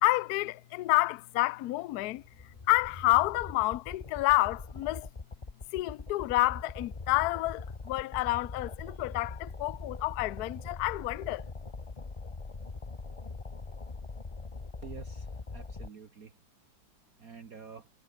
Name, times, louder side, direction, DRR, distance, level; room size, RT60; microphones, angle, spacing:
voice 1, 0.0-2.2 2.7-5.1 5.7-11.4, left 20 dB, 70° left, 1.0 m, -29 dB
sound 1, 2.2-15.9, left 3 dB, 25° left, 0.9 m, -42 dB
voice 2, 14.8-16.4 17.2-17.9, right 6 dB, 50° right, 1.9 m, -48 dB
omnidirectional pair, 2.1 m